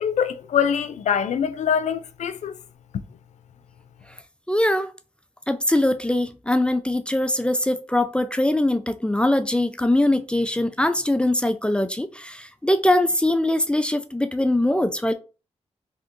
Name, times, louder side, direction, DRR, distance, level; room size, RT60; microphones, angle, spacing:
voice 1, 0.0-2.5 2.9-3.0, left 8 dB, 80° left, 0.4 m, -24 dB
voice 2, 4.5-4.9 5.5-15.1, left 1 dB, 10° left, 0.4 m, -22 dB
2.9 x 2.6 x 3.6 m
cardioid pair, 80°, 12 cm